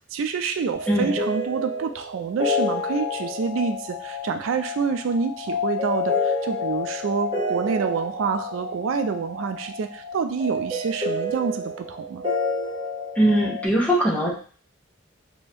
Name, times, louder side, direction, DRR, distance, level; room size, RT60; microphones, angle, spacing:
voice 1, 0.1-12.2, right 5 dB, 85° right, 7 dB, 0.3 m, -27 dB
sound 1, 0.7-13.7, left 3 dB, 25° right, 1.3 m, -29 dB
voice 2, 0.9-1.2 13.2-14.3, right 1 dB, 5° left, -4 dB, 0.8 m, -20 dB
2.8 x 2.6 x 3.3 m, 0.42 s
head